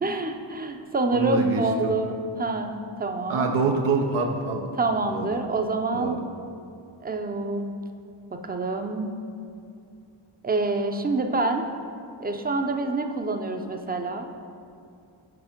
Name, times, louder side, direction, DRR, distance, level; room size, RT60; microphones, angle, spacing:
voice 1, 0.0-2.7 3.0-3.5 4.8-6.1 7.0-7.6 8.4-9.1 10.4-11.7 12.2-14.3, right 2 dB, 20° right, 5 dB, 0.5 m, -26 dB
voice 2, 1.1-2.0 3.3-4.7 5.1-5.3 5.9-6.2, right 4 dB, 80° right, 3 dB, 0.6 m, -26 dB
4.8 x 4.3 x 5.1 m, 2.5 s
cardioid pair, 45°, 49 cm